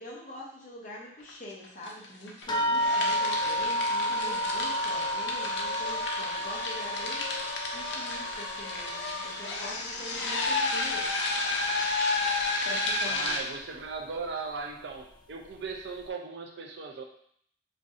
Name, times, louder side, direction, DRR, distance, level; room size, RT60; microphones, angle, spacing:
voice 1, 0.0-7.3 7.7-11.1 12.6-13.4, left 1 dB, 45° left, -3 dB, 0.9 m, -44 dB
sound 1, 1.3-1.4 1.6-2.4 2.7-13.4, left 3 dB, 80° left, 0.6 m, -31 dB
sound 2, 2.5-11.3 11.6-12.5 13.2-13.3 13.8-13.9, equal, 25° left, 0.4 m, -32 dB
voice 2, 13.1-17.0, right 4 dB, 80° right, 2 dB, 0.5 m, -38 dB
4.5 x 2.6 x 2.5 m, 0.65 s
head